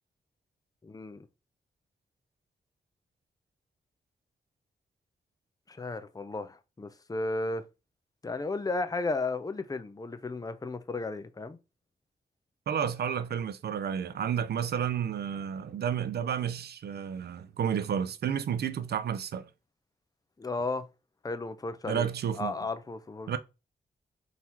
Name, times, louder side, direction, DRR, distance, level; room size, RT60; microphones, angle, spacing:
voice 1, 0.8-1.3 5.7-7.6 8.2-11.6 20.4-20.9 21.2-22.1 22.3-23.4, left 3 dB, 20° left, 0.6 m, -34 dB
voice 2, 12.7-19.5 21.9-22.5 23.3-23.4, right 8 dB, 75° right, 0.5 m, -31 dB
3.9 x 2.8 x 4.4 m
cardioid pair, 60°, 17 cm